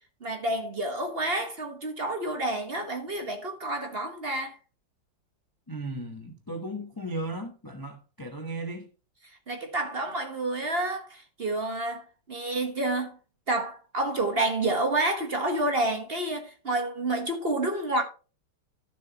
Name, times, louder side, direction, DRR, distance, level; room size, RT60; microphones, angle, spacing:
voice 1, 0.2-4.6 9.5-13.2 13.5-18.0, right 2 dB, 35° right, 1.1 m, -29 dB
voice 2, 5.7-8.9, right 1 dB, 25° left, 0.4 m, -36 dB
12.5 x 7.2 x 2.9 m
omnidirectional pair, 2.3 m